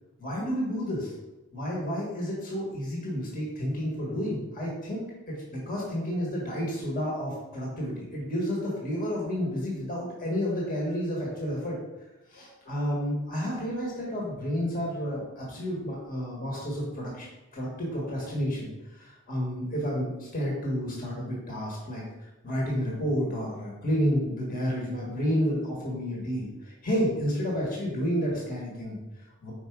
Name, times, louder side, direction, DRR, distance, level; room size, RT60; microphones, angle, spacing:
voice 1, 0.2-1.1 1.5-11.8 12.3-17.3 17.5-22.0 22.4-29.5, equal, 40° left, -4 dB, 1.6 m, -30 dB
4.9 x 4.8 x 4.7 m, 1.0 s
head